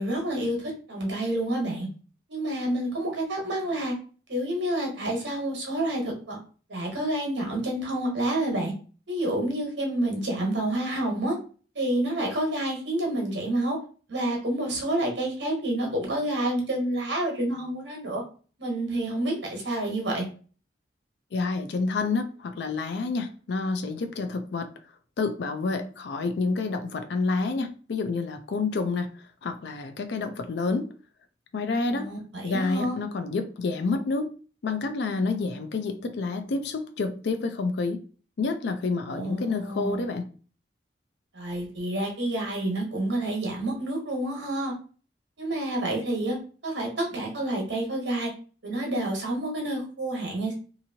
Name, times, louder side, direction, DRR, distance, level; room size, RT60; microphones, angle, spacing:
voice 1, 0.0-1.9 2.3-3.9 4.3-6.4 6.7-8.7 9.1-11.3 11.7-13.8 14.1-18.2 18.6-20.2 31.9-33.0 39.1-40.0 41.3-44.7 45.4-46.4 46.6-48.3 48.6-50.5, right 1 dB, 75° right, 1.1 m, -28 dB
voice 2, 21.3-24.7 25.2-29.1 29.4-30.9 31.5-32.1 32.4-34.3 34.6-38.0 38.4-40.3, left 3 dB, 65° left, 0.4 m, -28 dB
2.8 x 2.6 x 2.7 m
head